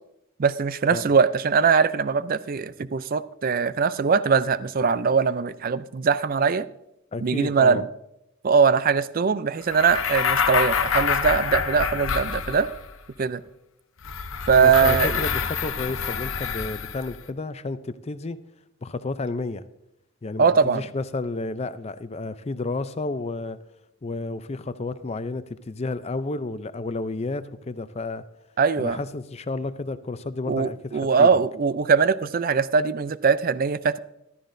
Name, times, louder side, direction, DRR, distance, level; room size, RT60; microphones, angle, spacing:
voice 1, 0.4-6.7 7.2-7.9 8.4-12.7 13.2-13.4 14.5-15.2 20.4-20.8 28.6-29.0 30.5-34.0, right 5 dB, 45° right, 15 dB, 0.4 m, -21 dB
voice 2, 7.1-7.8 14.6-18.4 18.8-19.6 20.2-23.6 24.0-28.2 28.8-31.3, left 3 dB, 30° left, 13 dB, 0.5 m, -31 dB
sound 1, 9.7-12.9 14.0-17.2, left 6 dB, 70° left, 0.7 m, -26 dB
14.0 x 12.5 x 2.6 m, 0.84 s
head